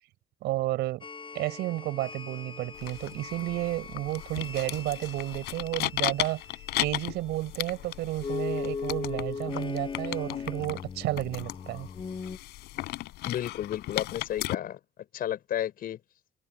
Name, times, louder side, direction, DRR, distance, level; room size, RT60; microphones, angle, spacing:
voice 1, 0.4-1.1 1.3-6.4 6.8-11.9, right 17 dB, 85° right, 5.7 m, -32 dB
sound 1, 1.0-12.4, left 5 dB, 30° left, 5.3 m, -39 dB
sound 2, 2.7-14.5, left 17 dB, 85° left, 4.4 m, -36 dB
voice 2, 13.2-14.8 15.1-16.0, left 11 dB, 60° left, 6.4 m, -32 dB
cardioid pair, 110°, 17 cm